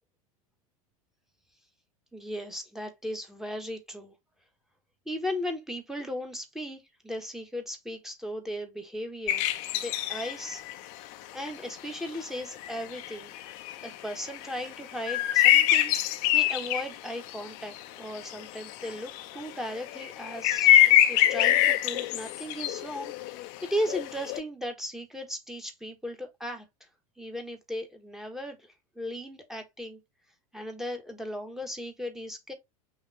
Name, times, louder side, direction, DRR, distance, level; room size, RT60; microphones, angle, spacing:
voice 1, 2.1-4.1 5.0-9.4 9.7-10.6 11.3-13.3 13.8-20.7 21.1-23.1 23.7-26.7 27.2-30.0 30.5-32.5, equal, ahead, 1.2 m, -36 dB
sound 1, 9.3-10.7 11.1-11.2 11.5-11.6 11.9-12.2 12.6-17.8 18.1-24.4, left 12 dB, 45° left, 0.6 m, -24 dB
5.7 x 2.7 x 3.3 m
figure-of-eight pair, 80°, 19 cm